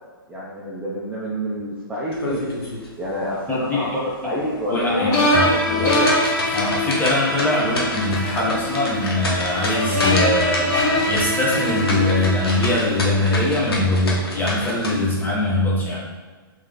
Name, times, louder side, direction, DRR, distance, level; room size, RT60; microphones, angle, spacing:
voice 1, 0.3-2.4 3.0-6.1, equal, 10° right, -7 dB, 0.6 m, -28 dB
sound 1, 2.1-2.9 3.2-3.3 3.8-3.9 4.5-14.9, left 1 dB, 90° left, 1.1 m, -28 dB
voice 2, 3.5-3.9 4.7-5.9 6.5-10.7 11.1-16.0, left 1 dB, 15° left, -5 dB, 1.0 m, -22 dB
sound 2, 5.1-13.3, left 1 dB, 45° left, 1.2 m, -23 dB
3.2 x 3.2 x 3.8 m, 1.4 s
hypercardioid pair, 130°, 12 cm